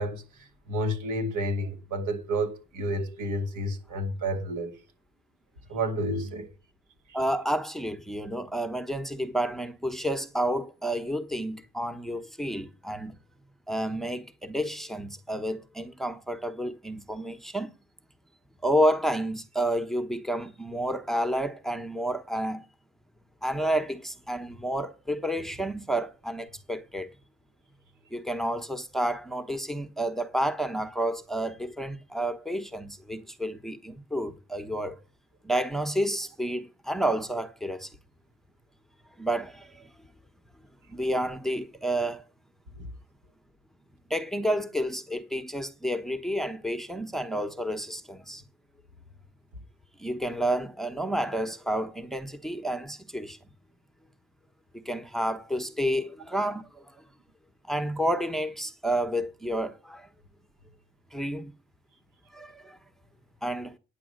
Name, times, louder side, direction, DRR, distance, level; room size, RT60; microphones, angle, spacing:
voice 1, 0.0-4.7 5.7-6.5 7.1-7.2 42.8-42.9, right 1 dB, 80° right, 2.2 m, -30 dB
voice 2, 7.1-13.1 13.7-17.7 18.6-22.6 23.4-27.1 28.1-35.0 35.4-37.9 39.2-39.9 40.9-42.2 44.1-48.4 50.0-53.4 54.8-57.0 57.7-60.1 61.1-61.5 62.3-62.8 63.4-63.8, right 1 dB, ahead, 1.1 m, -30 dB
9.8 x 6.9 x 6.5 m
cardioid pair, 90°, 30 cm